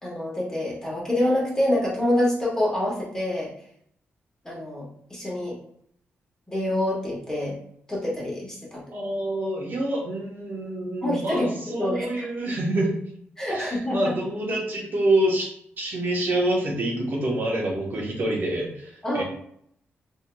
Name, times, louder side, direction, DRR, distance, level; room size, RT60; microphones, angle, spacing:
voice 1, 0.0-3.5 4.4-5.6 6.5-7.6 7.9-8.8 11.0-11.5 11.8-12.2 13.4-14.1 19.0-19.2, left 1 dB, 15° left, -5 dB, 1.3 m, -26 dB
voice 2, 8.9-13.0 13.5-19.2, right 1 dB, 50° right, -2 dB, 0.9 m, -27 dB
4.5 x 2.7 x 2.2 m, 0.68 s
cardioid pair, 120°, 4 cm